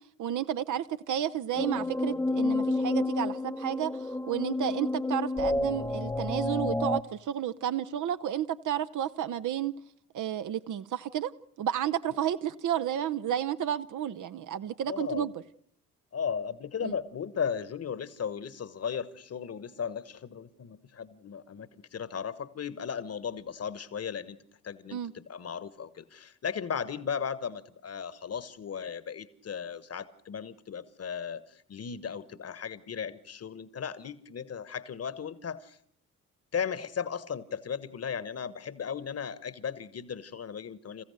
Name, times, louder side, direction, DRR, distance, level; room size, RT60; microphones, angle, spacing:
voice 1, 0.2-9.7 10.1-11.3 11.6-15.3 16.8-16.9 24.9-25.1, right 10 dB, 40° right, 0.7 m, -31 dB
sound 1, 1.5-7.0, left 2 dB, 5° left, 0.9 m, -30 dB
voice 2, 14.8-15.3 16.1-24.4 24.6-35.8 36.5-41.0, left 7 dB, 30° left, 1.3 m, -36 dB
28.0 x 15.5 x 6.6 m
figure-of-eight pair, 45°, 45 cm